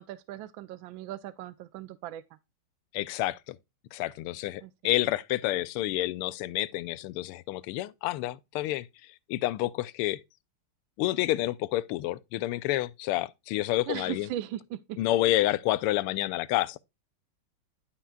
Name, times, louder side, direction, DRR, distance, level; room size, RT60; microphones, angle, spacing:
voice 1, 0.0-2.2 4.6-4.9 13.9-15.0, right 13 dB, 75° right, 1.2 m, -38 dB
voice 2, 2.9-3.6 3.9-8.9 9.3-10.2 11.0-14.3 15.0-16.8, left 15 dB, 90° left, 1.5 m, -29 dB
12.0 x 5.6 x 2.3 m
omnidirectional pair, 2.4 m